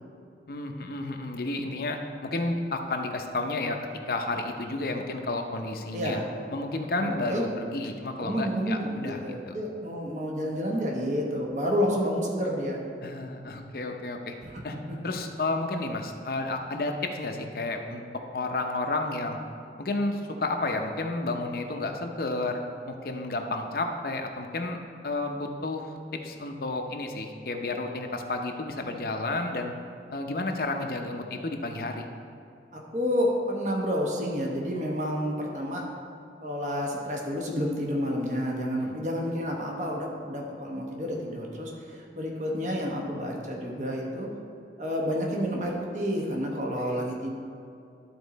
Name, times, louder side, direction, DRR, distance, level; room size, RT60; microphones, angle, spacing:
voice 1, 0.5-3.8 4.1-6.2 6.5-9.6 13.0-14.3 14.6-14.8 15.0-18.0 18.3-19.4 19.8-24.8 25.0-29.7 30.1-32.1 38.7-38.9 46.5-47.0, left 2 dB, 55° left, 4 dB, 0.7 m, -31 dB
voice 2, 5.9-6.3 7.0-7.4 8.2-12.8 14.9-15.2 32.7-35.8 36.4-44.3 44.8-47.3, equal, 45° right, -1 dB, 1.1 m, -30 dB
12.0 x 4.3 x 4.1 m, 2.5 s
head